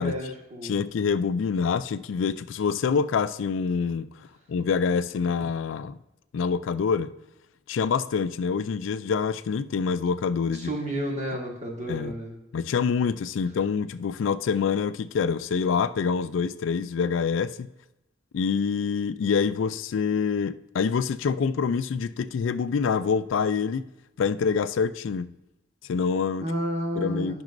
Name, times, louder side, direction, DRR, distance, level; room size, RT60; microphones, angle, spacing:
voice 1, 0.0-0.7 10.5-12.3 26.4-27.4, equal, 35° right, 1.6 m, -31 dB
voice 2, 0.6-4.1 4.5-6.0 6.3-7.1 7.7-10.7 11.9-12.1 12.5-17.7 18.3-23.9 24.2-25.3 25.9-26.5 27.0-27.4, left 6 dB, 80° left, 0.4 m, -26 dB
10.5 x 6.1 x 2.6 m
head